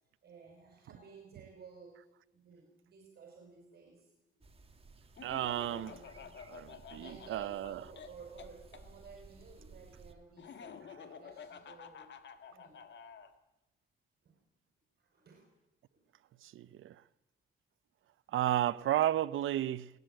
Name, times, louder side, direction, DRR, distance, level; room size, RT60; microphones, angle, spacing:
voice 1, 0.2-4.4 5.7-6.7 6.9-12.1 12.4-12.9 14.2-14.4 15.0-15.5 15.9-16.0 16.4-16.5, right 5 dB, 50° right, 5.3 m, -55 dB
sound 1, 4.4-10.1, right 3 dB, 30° right, 2.2 m, -57 dB
Laughter, 5.2-8.8 10.4-13.3, left 6 dB, 60° left, 1.9 m, -50 dB
voice 2, 5.2-5.9 6.5-7.8 16.4-16.9 18.3-19.9, right 12 dB, 80° right, 0.8 m, -33 dB
20.5 x 19.0 x 9.1 m
cardioid pair, 120°, 20 cm